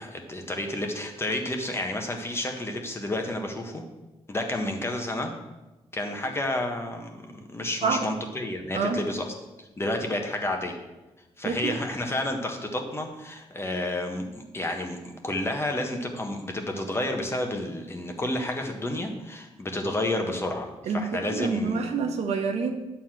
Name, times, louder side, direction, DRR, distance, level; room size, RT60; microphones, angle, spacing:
voice 1, 0.0-3.8 4.3-5.3 5.9-10.7 11.4-22.0, left 1 dB, 25° left, 3 dB, 1.4 m, -30 dB
voice 2, 8.7-9.0 11.4-11.7 20.9-22.7, right 5 dB, 85° right, 5 dB, 1.1 m, -27 dB
9.6 x 4.2 x 7.6 m, 1.1 s
cardioid pair, 90°, 11 cm